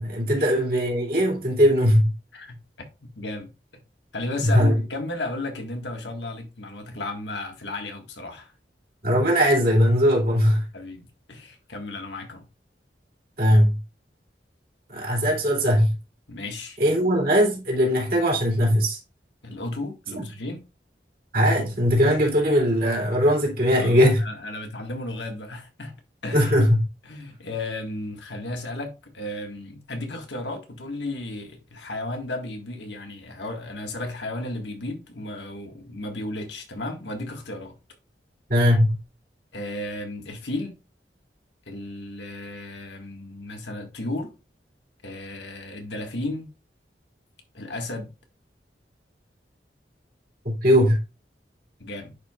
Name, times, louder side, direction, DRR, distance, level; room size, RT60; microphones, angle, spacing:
voice 1, 0.0-2.1 4.4-4.7 9.0-10.6 13.4-13.8 14.9-16.0 16.8-19.0 21.3-24.2 26.3-26.8 38.5-39.0 50.4-51.0, equal, 55° right, 2.8 m, -20 dB
voice 2, 3.0-3.8 4.1-8.5 10.7-12.5 16.3-16.8 19.4-20.6 23.7-26.0 26.2-26.5 27.0-37.8 39.5-40.8 41.7-44.3 45.0-46.5 47.5-48.1 51.8-52.2, left 2 dB, 85° left, 1.6 m, -34 dB
10.5 x 4.6 x 2.4 m
head